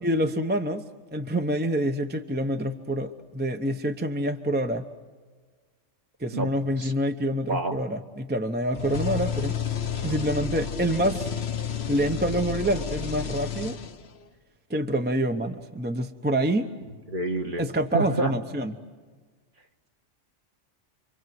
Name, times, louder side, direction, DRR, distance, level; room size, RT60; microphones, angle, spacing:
voice 1, 0.0-0.8 1.1-4.9 6.2-9.5 10.0-11.3 11.9-13.8 14.7-16.7 17.6-18.7, right 1 dB, 10° right, 6 dB, 0.8 m, -27 dB
sound 1, 8.7-14.2, left 7 dB, 60° left, 1.2 m, -31 dB
voice 2, 17.1-17.6 17.9-18.3, right 2 dB, 45° right, 3 dB, 1.8 m, -27 dB
28.5 x 24.5 x 7.9 m, 1.5 s
omnidirectional pair, 1.3 m